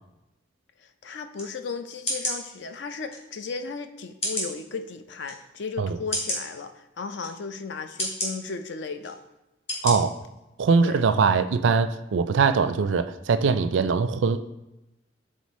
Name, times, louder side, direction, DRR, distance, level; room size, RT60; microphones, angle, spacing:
voice 1, 0.8-9.2 10.7-11.0, left 4 dB, 60° left, 8 dB, 0.4 m, -35 dB
sound 1, 1.3-1.5 2.1-2.4 3.1-3.2 4.2-4.5 5.2-5.3 6.1-6.4 7.2-7.3 8.0-8.3 9.0-9.1 9.7-9.9 10.4-10.5, equal, 35° left, 1.9 m, -29 dB
voice 2, 9.8-10.1 10.6-14.4, right 5 dB, 70° right, 12 dB, 0.4 m, -22 dB
6.3 x 3.7 x 4.2 m, 0.96 s
head